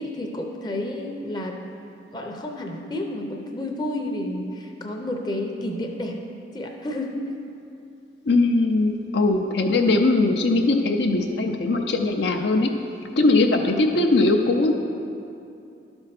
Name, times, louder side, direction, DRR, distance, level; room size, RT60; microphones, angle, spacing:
voice 1, 0.0-1.6 2.1-6.2 6.5-7.3 13.2-13.6, left 1 dB, 20° left, 2 dB, 0.6 m, -31 dB
voice 2, 8.3-12.7 13.2-14.7, left 2 dB, 65° left, 3 dB, 0.5 m, -20 dB
11.5 x 4.4 x 5.8 m, 2.7 s
head